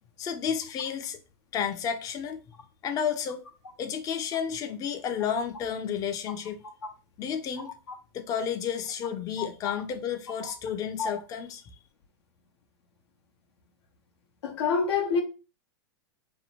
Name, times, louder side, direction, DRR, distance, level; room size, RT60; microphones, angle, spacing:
voice 1, 0.2-1.2 1.5-2.4 2.8-3.4 3.8-6.6 7.2-7.8 8.1-11.6, left 7 dB, 25° left, 0.4 m, -31 dB
voice 2, 9.4-9.7 10.4-10.5 11.0-11.1 14.4-15.2, left 5 dB, 85° left, 0.7 m, -28 dB
2.6 x 2.0 x 2.9 m
hypercardioid pair, 110°, 14 cm